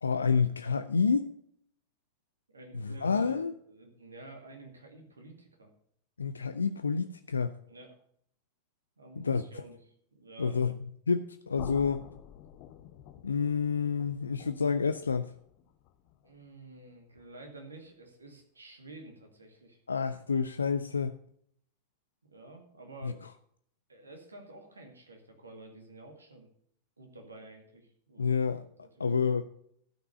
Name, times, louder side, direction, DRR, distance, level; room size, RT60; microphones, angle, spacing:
voice 1, 0.0-1.3 2.7-3.5 6.2-7.6 9.2-9.4 10.4-12.1 13.2-15.3 19.9-21.2 23.0-23.1 28.2-28.7 29.0-29.4, left 5 dB, 75° left, 0.5 m, -29 dB
voice 2, 2.5-5.7 7.7-8.0 9.0-10.6 16.2-19.8 22.3-23.2 23.9-26.5 27.0-28.3, right 2 dB, 75° right, 2.1 m, -50 dB
sound 1, 11.6-17.5, left 10 dB, 45° left, 0.8 m, -50 dB
12.5 x 6.0 x 6.7 m
figure-of-eight pair, 90°, 0 cm